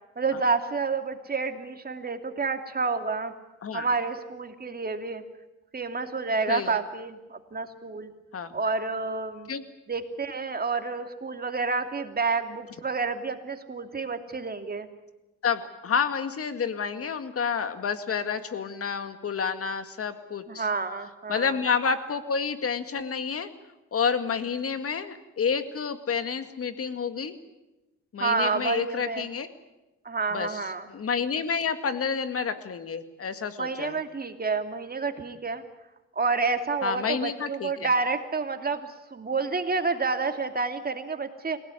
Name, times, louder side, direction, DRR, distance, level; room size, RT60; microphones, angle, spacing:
voice 1, 0.2-3.3 3.7-5.2 5.7-8.1 8.5-9.5 9.9-14.9 20.5-21.6 28.2-29.3 30.0-30.9 33.6-35.6 36.2-41.6, right 4 dB, 30° right, 7 dB, 2.7 m, -29 dB
voice 2, 6.5-6.8 8.3-8.5 9.5-9.6 15.4-20.7 21.3-23.5 23.9-27.4 28.1-29.5 30.3-30.6 30.9-34.0 36.8-37.9, left 6 dB, 50° left, 9 dB, 2.1 m, -29 dB
28.5 x 17.5 x 9.9 m, 1.0 s
cardioid pair, 90°, 30 cm